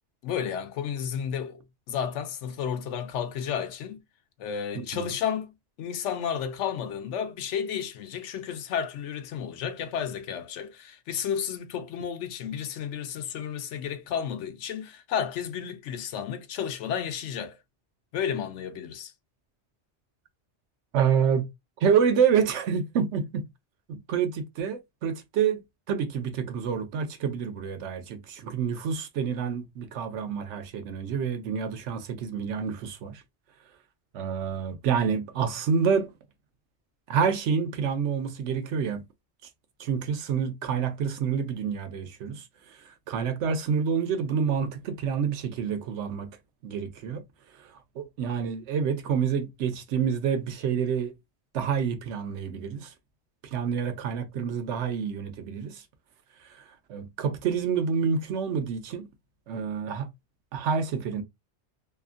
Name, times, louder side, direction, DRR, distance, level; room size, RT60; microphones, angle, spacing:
voice 1, 0.2-1.6 1.9-4.0 4.4-5.5 5.8-17.6 18.1-19.1, left 8 dB, 85° left, 0.9 m, -32 dB
voice 2, 20.9-21.5 21.8-23.5 23.9-25.6 25.9-33.2 34.1-36.1 37.1-39.0 39.8-42.4 43.1-46.3 46.6-47.2 48.0-51.1 51.5-52.9 53.4-55.8 56.9-59.1 59.5-60.1 60.5-61.2, right 7 dB, 80° right, 0.9 m, -28 dB
2.8 x 2.4 x 2.4 m
omnidirectional pair, 1.2 m